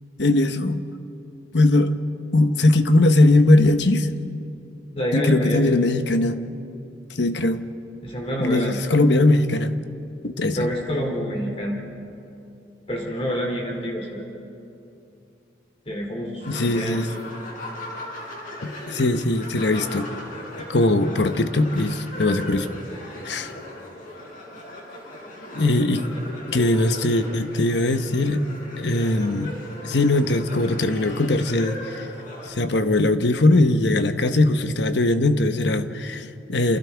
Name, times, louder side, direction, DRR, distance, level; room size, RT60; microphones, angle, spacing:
voice 1, 0.2-0.8 1.5-1.9 2.3-4.1 5.1-6.4 7.1-7.6 8.4-9.7 10.2-10.7 16.5-17.1 18.6-20.1 20.7-22.7 23.2-23.5 25.5-26.0 26.5-28.5 28.8-29.5 29.8-32.1 32.5-36.8, left 2 dB, 80° left, 9 dB, 1.0 m, -20 dB
voice 2, 4.9-5.8 8.0-8.8 10.6-11.8 12.9-14.2 15.9-17.1, equal, 35° left, 0 dB, 2.7 m, -27 dB
sound 1, 16.4-32.5, left 1 dB, 50° left, 5.1 m, -37 dB
28.5 x 27.5 x 3.5 m, 2.7 s
head